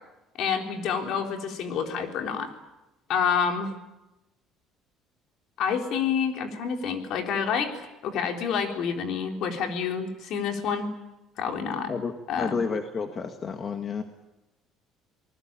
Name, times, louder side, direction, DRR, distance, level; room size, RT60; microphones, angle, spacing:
voice 1, 0.4-2.5 3.1-3.7 5.6-10.9 11.4-11.9 12.3-12.6, left 6 dB, 60° left, 4 dB, 3.8 m, -28 dB
voice 2, 11.9-14.0, left 5 dB, 30° left, 5 dB, 1.8 m, -31 dB
26.5 x 19.5 x 8.9 m, 1.0 s
cardioid pair, 130°, 0 cm